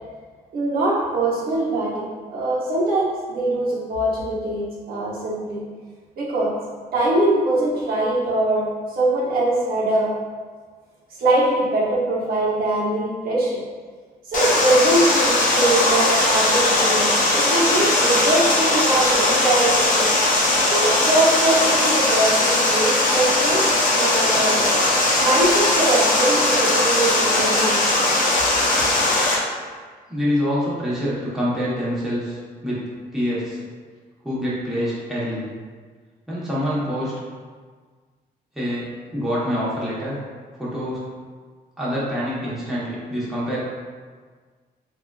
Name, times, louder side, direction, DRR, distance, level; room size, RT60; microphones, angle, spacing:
voice 1, 0.5-5.6 6.2-6.5 6.9-10.1 11.2-13.6 14.3-20.1 20.7-24.6 25.2-27.9, right 1 dB, 65° right, -6 dB, 0.8 m, -22 dB
Water, 14.3-29.3, left 2 dB, 55° left, 0.7 m, -19 dB
voice 2, 30.1-33.6 34.2-35.5 36.3-37.1 38.5-40.2 40.6-41.0 41.8-43.6, equal, ahead, -9 dB, 1.0 m, -26 dB
3.5 x 2.4 x 2.3 m, 1.6 s
cardioid pair, 105°, 17 cm